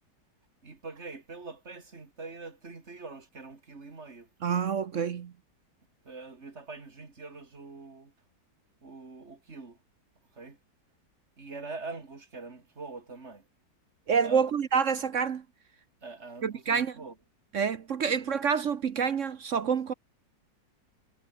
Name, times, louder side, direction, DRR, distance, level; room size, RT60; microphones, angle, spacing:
voice 1, 0.6-4.3 4.5-4.7 6.0-8.1 8.8-9.8 10.3-10.6 11.4-13.5 14.2-14.5 16.0-17.2 18.1-18.5, right 3 dB, 35° right, 2.8 m, -44 dB
voice 2, 4.4-5.3 14.1-15.4 16.4-17.0 17.5-19.9, right 6 dB, 50° right, 1.0 m, -27 dB
omnidirectional pair, 2.0 m